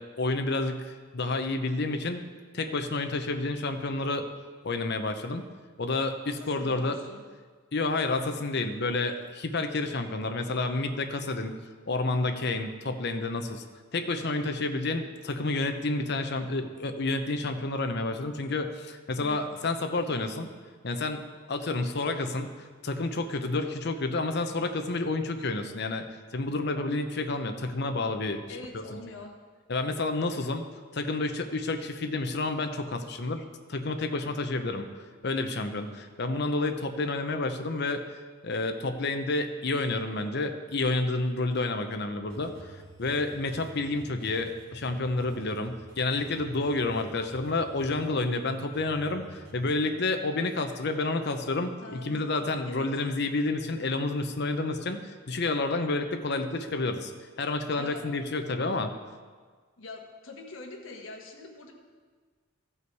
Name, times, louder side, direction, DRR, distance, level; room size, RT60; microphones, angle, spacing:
voice 1, 0.0-2.2 2.5-4.3 4.6-5.5 5.8-7.0 7.7-11.6 11.9-13.6 13.9-20.5 20.8-22.5 22.8-26.1 26.3-28.4 28.7-29.0 29.7-30.6 30.9-33.4 33.7-34.8 35.2-38.0 38.4-42.5 43.0-57.1 57.4-58.9, left 2 dB, 55° left, 6 dB, 0.8 m, -30 dB
voice 2, 6.3-7.2 19.2-19.7 28.5-29.3 51.8-52.9 57.8-58.0 59.8-61.8, left 2 dB, 75° left, 2 dB, 1.4 m, -44 dB
sound 1, 42.3-49.8, right 2 dB, 90° right, 2.4 m, -49 dB
15.0 x 5.6 x 4.7 m, 1.5 s
head